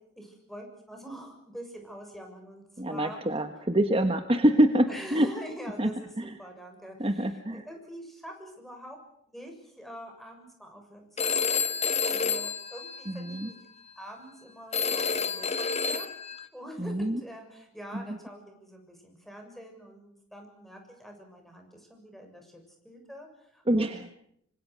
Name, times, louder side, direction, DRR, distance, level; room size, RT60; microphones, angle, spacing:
voice 1, 0.2-3.2 4.9-9.0 9.3-11.4 12.0-13.6 14.0-24.1, equal, ahead, 3 dB, 6.9 m, -45 dB
voice 2, 2.8-5.3 5.8-5.9 6.2-6.4 7.0-7.6 13.1-13.5 16.8-17.2 17.9-18.2 23.7-24.1, right 1 dB, 30° right, 7 dB, 1.4 m, -26 dB
Telephone, 11.2-13.5 14.7-16.4, left 5 dB, 35° left, 1.6 m, -29 dB
26.0 x 25.5 x 6.4 m, 0.71 s
head